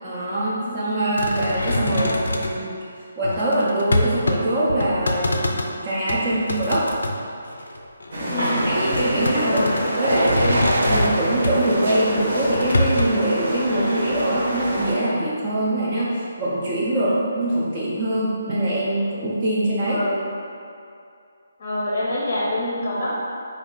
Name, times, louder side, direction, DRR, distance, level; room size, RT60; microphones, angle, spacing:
voice 1, 0.0-2.1 2.4-2.8 3.2-6.9 8.2-20.0, right 1 dB, 25° right, -8 dB, 0.5 m, -23 dB
voice 2, 0.6-1.0 1.9-2.3 6.2-6.5 8.3-8.7 9.4-9.8 13.7-14.0 16.9-17.2 19.9-20.3 21.6-23.1, left 1 dB, 40° left, -6 dB, 0.6 m, -27 dB
sound 1, 1.2-2.6 3.2-4.4 4.7-5.7 6.1-7.2 7.6-8.2 8.9-11.7 12.4-13.1, left 1 dB, 90° left, 0.4 m, -25 dB
sound 2, 8.1-14.9, right 1 dB, 50° right, 0.9 m, -26 dB
sound 3, 9.1-9.5 10.0-11.1 11.6-12.7 13.2-13.6, right 1 dB, 90° right, 0.4 m, -26 dB
3.5 x 2.3 x 3.7 m, 2.4 s
hypercardioid pair, 175°, 0 cm